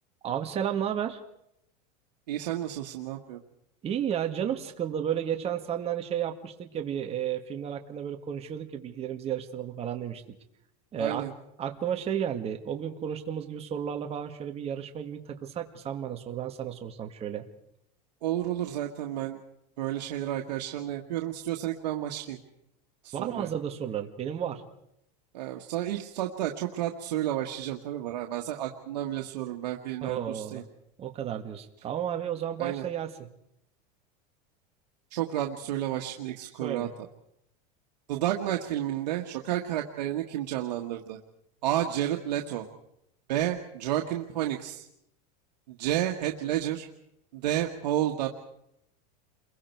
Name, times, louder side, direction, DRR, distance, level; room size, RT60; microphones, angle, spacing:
voice 1, 0.2-1.2 3.8-10.2 10.9-11.2 11.6-17.5 23.1-24.6 30.0-30.6 31.0-33.2 36.6-36.9, right 9 dB, 30° right, 4 dB, 1.9 m, -32 dB
voice 2, 2.3-3.4 11.0-11.3 18.2-19.4 19.8-22.4 23.0-23.5 25.3-30.6 32.6-32.8 35.1-36.9 38.1-41.2 41.6-42.6 43.3-44.8 45.7-46.9 47.3-48.3, right 12 dB, 90° right, 2 dB, 1.7 m, -31 dB
29.5 x 22.5 x 4.7 m, 0.78 s
supercardioid pair, 135°, 21 cm